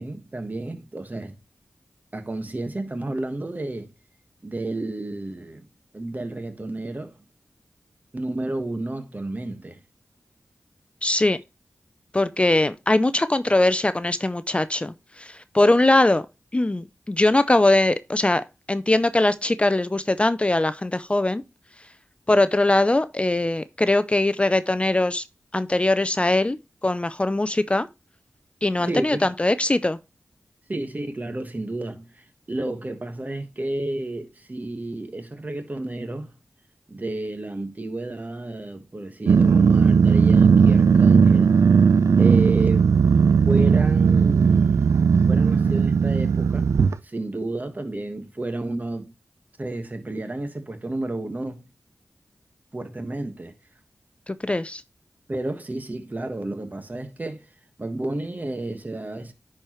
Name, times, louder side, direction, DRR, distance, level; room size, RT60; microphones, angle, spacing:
voice 1, 0.0-1.3 2.1-3.9 4.4-5.6 5.9-7.1 8.1-9.8 28.8-29.3 30.7-36.3 36.9-41.6 42.2-42.9 43.5-45.0 45.3-46.7 47.0-49.1 49.6-51.6 52.7-53.5 55.3-57.5 57.8-59.3, right 2 dB, 35° right, 1.4 m, -31 dB
voice 2, 11.0-11.4 12.1-16.3 16.5-21.4 22.3-25.2 25.5-27.9 28.6-30.0 54.3-54.8, left 2 dB, 25° left, 0.4 m, -21 dB
Growling, 39.3-46.9, right 6 dB, 80° right, 0.3 m, -17 dB
10.0 x 4.5 x 3.0 m
cardioid pair, 45°, 5 cm